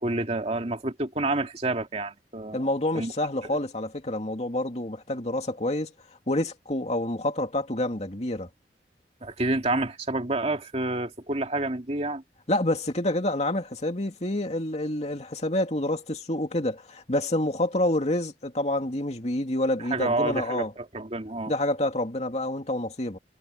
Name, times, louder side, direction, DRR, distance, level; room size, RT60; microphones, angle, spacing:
voice 1, 0.0-2.7 2.9-3.1 9.2-12.2 19.8-21.5, right 2 dB, 40° right, 2.7 m, -29 dB
voice 2, 2.5-5.9 6.3-8.5 12.5-20.7 21.5-23.2, left 1 dB, 40° left, 2.7 m, -28 dB
head